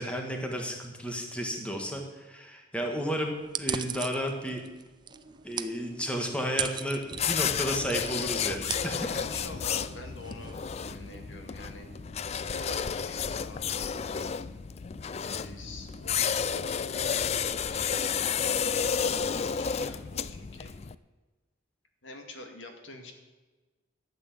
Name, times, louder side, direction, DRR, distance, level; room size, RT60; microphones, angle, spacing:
voice 1, 0.0-3.3 3.6-4.6 5.4-9.3, equal, 5° left, 2 dB, 1.6 m, -32 dB
sound 1, 3.4-11.2, right 7 dB, 25° right, 0.5 m, -39 dB
sound 2, 5.1-19.8, right 1 dB, 45° right, 1.8 m, -56 dB
sound 3, 7.1-20.9, left 7 dB, 35° left, 0.4 m, -31 dB
voice 2, 9.0-11.9 12.3-14.4 15.1-20.7 22.0-23.1, left 2 dB, 85° left, 5 dB, 2.0 m, -46 dB
12.5 x 8.1 x 8.5 m, 1.2 s
head